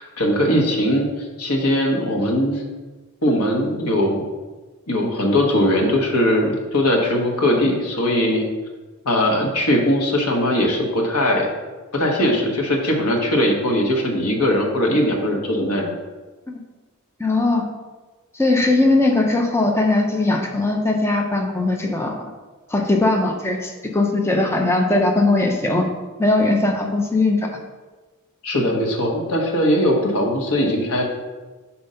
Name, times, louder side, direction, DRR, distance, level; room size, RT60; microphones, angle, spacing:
voice 1, 0.0-2.6 3.2-4.2 4.9-8.5 9.0-11.5 11.9-16.0 28.4-31.1, left 1 dB, 90° left, 1 dB, 1.2 m, -20 dB
voice 2, 17.2-17.7 18.3-22.3 22.7-25.9 26.2-27.5, left 2 dB, 10° left, 1 dB, 0.6 m, -19 dB
5.3 x 4.4 x 5.5 m, 1.3 s
head